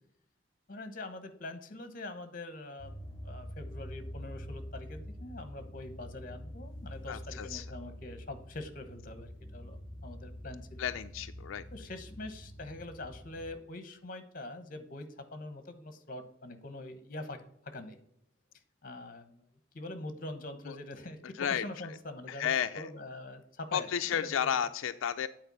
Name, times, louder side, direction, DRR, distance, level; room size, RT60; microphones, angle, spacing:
voice 1, 0.7-10.8 11.7-18.0 18.8-19.4 19.7-24.6, left 2 dB, 45° left, 9 dB, 1.0 m, -44 dB
sound 1, 2.8-13.5, equal, 20° left, 3.4 m, -46 dB
voice 2, 7.1-7.7 10.8-11.6 20.7-20.8 21.4-21.6 22.3-22.9 23.7-25.3, left 8 dB, 90° left, 10 dB, 0.4 m, -32 dB
8.9 x 4.4 x 5.4 m, 0.73 s
head